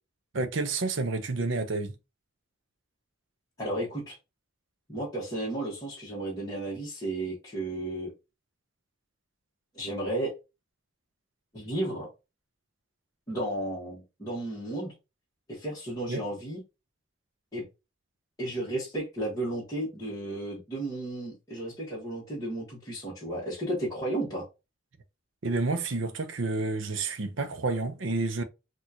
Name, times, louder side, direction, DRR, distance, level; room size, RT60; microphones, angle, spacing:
voice 1, 0.3-1.9 16.1-16.2 25.4-28.4, right 3 dB, 70° right, 0.6 m, -29 dB
voice 2, 3.6-4.2 4.9-8.1 9.7-10.3 11.5-12.1 13.3-14.9 15.5-16.6 17.5-17.6 18.4-24.4, right 1 dB, 20° left, 1.4 m, -33 dB
4.2 x 2.5 x 2.7 m
head